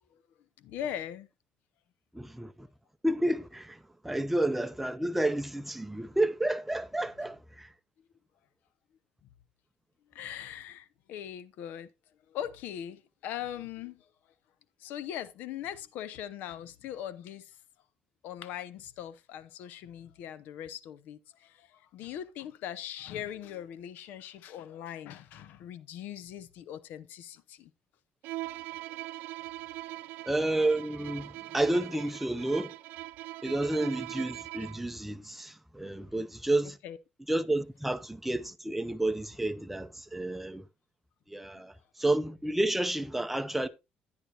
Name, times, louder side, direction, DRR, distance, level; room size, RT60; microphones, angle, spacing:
voice 1, 0.6-1.3 10.1-11.9 12.3-14.1 14.8-17.6 18.2-27.7 36.8-37.0, left 10 dB, 75° left, 0.7 m, -40 dB
voice 2, 2.1-2.7 3.0-3.8 4.0-7.7 30.3-32.7 33.4-36.8 37.3-40.6 41.3-41.7 42.0-43.7, right 1 dB, 5° right, 0.6 m, -30 dB
Bowed string instrument, 28.2-34.9, right 18 dB, 80° right, 0.5 m, -41 dB
10.5 x 9.8 x 2.9 m
cardioid pair, 95°, 3 cm